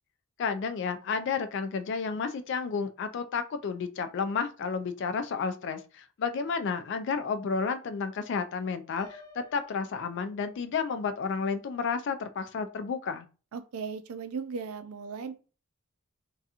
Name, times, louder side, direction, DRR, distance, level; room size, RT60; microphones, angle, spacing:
voice 1, 0.4-13.3, left 5 dB, 55° left, 10 dB, 0.3 m, -31 dB
Piano, 9.0-10.9, left 3 dB, 20° left, 0.9 m, -53 dB
voice 2, 13.5-15.3, right 5 dB, 75° right, 9 dB, 0.4 m, -37 dB
2.8 x 2.3 x 2.4 m, 0.35 s
head